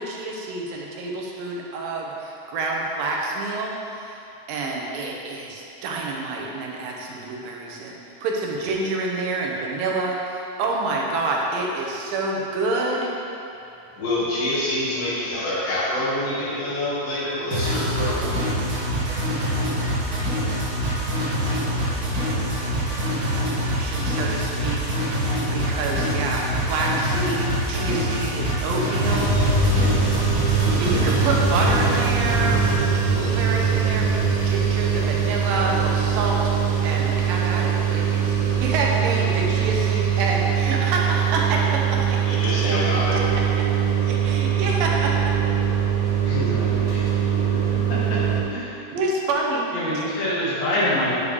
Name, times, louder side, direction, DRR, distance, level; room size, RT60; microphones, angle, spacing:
voice 1, 0.0-4.1 4.5-13.1 23.8-29.9 30.8-42.4 43.3-43.7 44.0-45.1 48.9-49.7, right 2 dB, 80° right, -1 dB, 2.6 m, -27 dB
voice 2, 13.9-18.3 42.2-43.2, left 1 dB, 75° left, -9 dB, 3.6 m, -26 dB
sound 1, 17.5-32.7, equal, 60° right, 3.1 m, -25 dB
sound 2, 29.0-48.4, right 7 dB, 40° right, 1.6 m, -22 dB
voice 3, 46.2-47.0 47.9-48.2 48.5-48.7 49.7-51.2, left 1 dB, 55° left, -8 dB, 2.7 m, -25 dB
9.8 x 6.7 x 3.4 m, 2.8 s
omnidirectional pair, 4.0 m